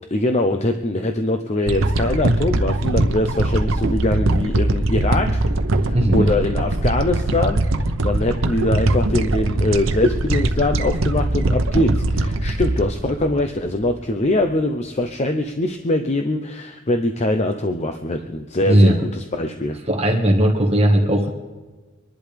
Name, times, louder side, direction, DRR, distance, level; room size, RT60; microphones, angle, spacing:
voice 1, 0.1-5.4 5.8-19.8, left 1 dB, 35° left, 6 dB, 0.7 m, -22 dB
sound 1, 1.7-14.0 14.5-14.6, right 2 dB, 90° right, 0.9 m, -21 dB
voice 2, 5.9-6.3 18.7-19.0 19.9-21.3, right 1 dB, 30° right, 2 dB, 1.5 m, -16 dB
25.0 x 11.0 x 3.4 m, 1.3 s
head